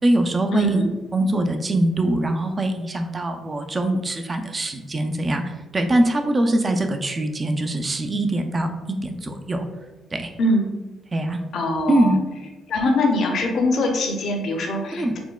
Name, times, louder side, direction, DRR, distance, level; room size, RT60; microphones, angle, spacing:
voice 1, 0.0-0.8 1.1-8.7 9.0-9.7 10.1-10.3 11.1-11.4 11.9-12.2 12.9-13.0 15.0-15.2, right 1 dB, 30° right, 5 dB, 0.4 m, -22 dB
voice 2, 0.5-0.9 10.4-10.7 11.5-12.1 12.7-15.2, left 1 dB, 65° left, 3 dB, 0.6 m, -22 dB
4.3 x 2.1 x 2.2 m, 1.1 s
cardioid pair, 90°, 0 cm